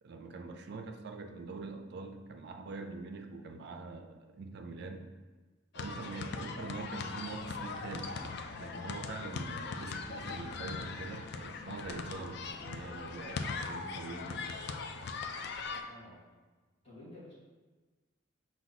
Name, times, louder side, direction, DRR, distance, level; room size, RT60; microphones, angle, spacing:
voice 1, 0.0-5.1 5.7-8.2 8.6-14.6, right 3 dB, 55° right, 6 dB, 0.4 m, -44 dB
sound 1, 5.7-15.8, left 4 dB, 55° left, 0.3 m, -40 dB
voice 2, 15.7-16.2 16.8-17.3, left 1 dB, 30° left, -10 dB, 1.2 m, -52 dB
5.6 x 2.3 x 4.0 m, 1.3 s
head